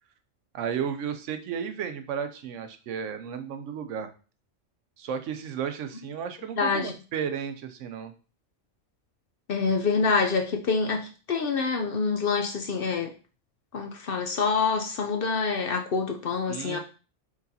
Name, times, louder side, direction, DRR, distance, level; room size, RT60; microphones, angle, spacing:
voice 1, 0.5-4.1 5.0-8.1 16.5-16.8, right 7 dB, 80° right, 8 dB, 0.9 m, -33 dB
voice 2, 6.6-6.9 9.5-13.1 13.7-16.8, left 4 dB, 60° left, 4 dB, 0.6 m, -26 dB
4.8 x 3.9 x 2.7 m, 0.36 s
omnidirectional pair, 1.3 m